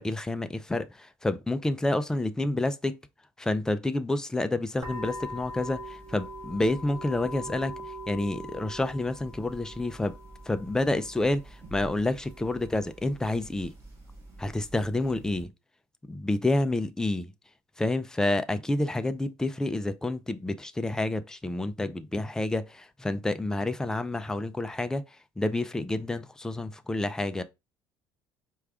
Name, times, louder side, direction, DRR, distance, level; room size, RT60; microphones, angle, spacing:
voice 1, 0.0-3.0 3.4-7.7 8.1-10.2 10.5-13.7 14.4-15.5 16.1-17.3 17.8-27.4, left 2 dB, 10° left, 0.3 m, -29 dB
sound 1, 4.8-15.4, equal, 35° right, 2.0 m, -43 dB
4.7 x 2.3 x 3.5 m
cardioid pair, 130°, 8 cm